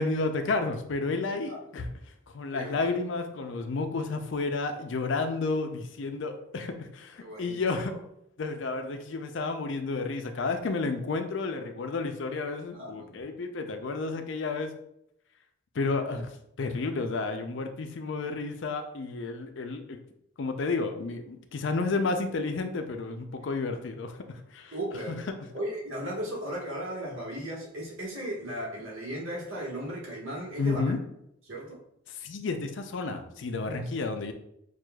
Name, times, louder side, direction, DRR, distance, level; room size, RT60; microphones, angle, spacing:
voice 1, 0.0-1.9 2.3-7.9 8.4-14.7 15.7-16.3 16.6-20.0 20.4-24.7 25.1-25.4 30.6-31.0 32.2-34.3, left 3 dB, 65° left, 6 dB, 0.5 m, -31 dB
voice 2, 2.5-2.9 7.2-7.5 7.8-8.0 12.7-13.2 24.7-25.2 25.5-31.0 31.5-31.8 33.6-34.0, right 1 dB, 80° right, -4 dB, 1.4 m, -36 dB
6.1 x 2.4 x 2.3 m, 0.77 s
head